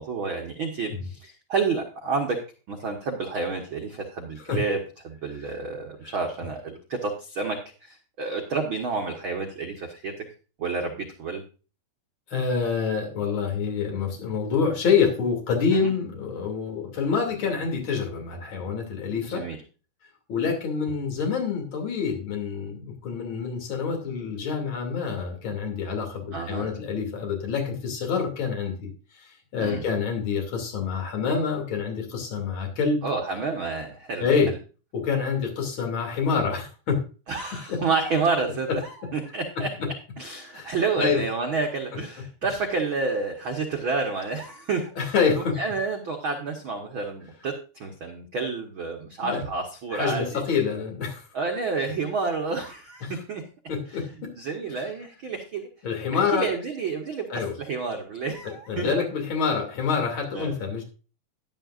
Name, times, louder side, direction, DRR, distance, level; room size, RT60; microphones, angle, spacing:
voice 1, 0.0-2.4 2.7-10.1 10.6-11.4 15.7-15.9 19.2-19.6 26.3-26.7 29.6-29.8 33.0-34.6 37.3-39.7 40.2-50.4 51.3-53.4 53.9-55.7 56.1-58.9 60.3-60.5, right 4 dB, 85° right, 2 dB, 1.1 m, -30 dB
voice 2, 12.3-19.4 20.3-28.9 29.2-33.0 34.2-34.5 34.9-37.0 37.7-37.8 39.6-39.7 40.5-40.7 41.0-41.2 45.0-45.6 49.2-49.4 49.9-51.3 53.0-53.1 53.7-54.3 55.8-56.5 57.3-57.6 58.4-60.8, left 5 dB, 35° left, 1 dB, 3.1 m, -27 dB
12.5 x 11.0 x 2.5 m, 0.34 s
omnidirectional pair, 4.5 m